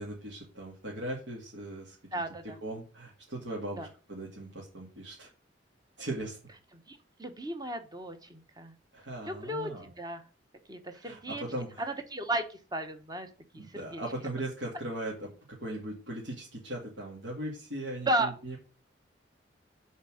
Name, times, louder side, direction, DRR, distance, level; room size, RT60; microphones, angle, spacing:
voice 1, 0.0-2.0 2.4-5.3 6.0-6.4 8.9-9.9 11.0-11.8 13.5-18.6, right 1 dB, 85° right, -5 dB, 2.3 m, -39 dB
voice 2, 2.1-2.6 3.8-3.9 6.9-8.8 9.2-10.2 10.7-11.4 11.8-13.3 13.5-14.0 18.1-18.3, right 1 dB, 20° right, 8 dB, 1.0 m, -34 dB
7.3 x 4.4 x 6.3 m, 0.35 s
head